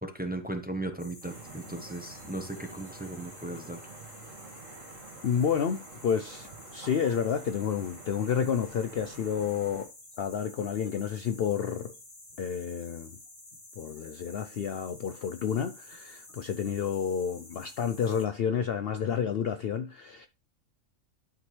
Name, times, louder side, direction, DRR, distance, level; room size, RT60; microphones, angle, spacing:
voice 1, 0.0-3.8, right 1 dB, 10° right, 0.8 m, -37 dB
sound 1, 1.0-18.3, left 2 dB, 40° left, 2.2 m, -51 dB
sound 2, 1.2-9.9, right 4 dB, 75° right, 1.9 m, -48 dB
voice 2, 5.2-9.9 10.2-11.9 12.4-13.2 13.8-20.3, left 7 dB, 60° left, 0.6 m, -30 dB
11.5 x 4.8 x 3.2 m
omnidirectional pair, 1.4 m